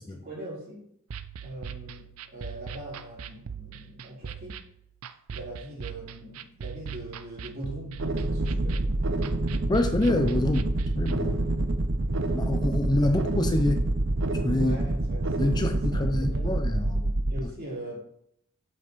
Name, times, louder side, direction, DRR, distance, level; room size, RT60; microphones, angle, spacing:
voice 1, 0.1-0.8 1.4-4.6 5.3-8.9 12.1-12.3 13.0-13.1 14.6-15.6 15.9-16.5 17.3-18.0, right 1 dB, 45° right, -5 dB, 4.2 m, -41 dB
sound 1, 1.1-11.1, right 7 dB, 85° right, 0.5 m, -41 dB
sound 2, 7.9-17.4, right 2 dB, 60° right, 0.8 m, -27 dB
voice 2, 9.7-11.4 12.3-13.8 14.4-14.8 15.4-17.1 17.4-17.5, left 1 dB, 20° left, 6 dB, 0.5 m, -27 dB
8.1 x 7.4 x 4.6 m, 0.73 s
head